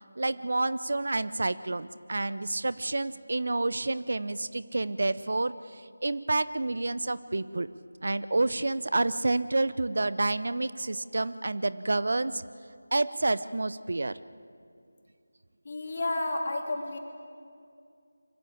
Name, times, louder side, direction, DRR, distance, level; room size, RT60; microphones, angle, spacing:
voice 1, 0.2-7.7 8.0-12.4 12.9-14.1, right 2 dB, 60° right, 15 dB, 0.6 m, -29 dB
voice 2, 15.6-17.0, left 2 dB, 45° left, 2 dB, 3.1 m, -31 dB
24.5 x 15.0 x 8.6 m, 2.3 s
figure-of-eight pair, 165°, 0 cm